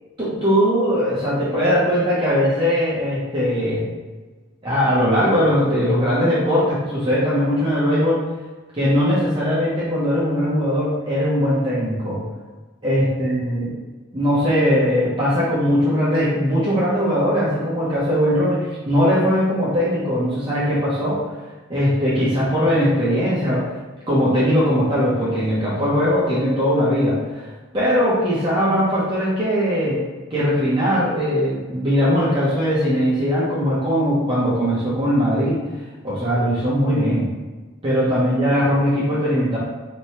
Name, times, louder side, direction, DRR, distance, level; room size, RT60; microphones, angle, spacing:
voice 1, 0.2-3.9 4.6-8.2 8.7-12.2 12.8-13.7 14.1-21.2 21.7-23.7 24.1-27.5 27.7-30.0 30.3-35.6 36.0-37.2 37.8-39.6, equal, 25° right, -9 dB, 0.6 m, -20 dB
3.0 x 2.2 x 2.8 m, 1.3 s
head